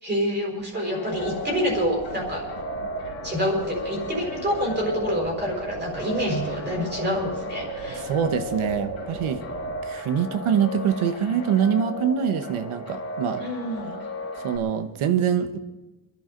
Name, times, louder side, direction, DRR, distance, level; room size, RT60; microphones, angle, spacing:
voice 1, 0.0-2.4 3.2-8.0 13.4-13.9, equal, 20° right, -2 dB, 5.0 m, -27 dB
sound 1, 0.7-14.6, left 2 dB, 30° left, 3.9 m, -35 dB
sound 2, 1.1-9.8, right 3 dB, 45° right, 5.6 m, -37 dB
voice 2, 7.9-9.4 9.9-13.5 14.4-15.6, right 8 dB, 85° right, 10 dB, 1.3 m, -24 dB
26.5 x 11.5 x 3.9 m, 1.1 s
wide cardioid pair, 170°, 49 cm